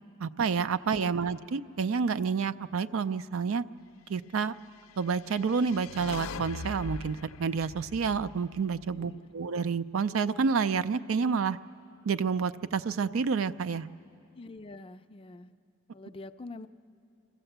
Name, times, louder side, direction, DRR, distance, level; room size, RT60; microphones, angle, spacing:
voice 1, 0.2-3.6 4.1-4.5 5.0-11.6 12.1-13.9, right 5 dB, 85° right, 13 dB, 0.4 m, -29 dB
sound 1, 5.0-9.3, left 4 dB, 90° left, 0.5 m, -42 dB
voice 2, 8.9-9.3 14.3-15.5 15.9-16.7, left 2 dB, 25° left, 10 dB, 0.4 m, -45 dB
25.5 x 14.5 x 7.9 m, 2.7 s
head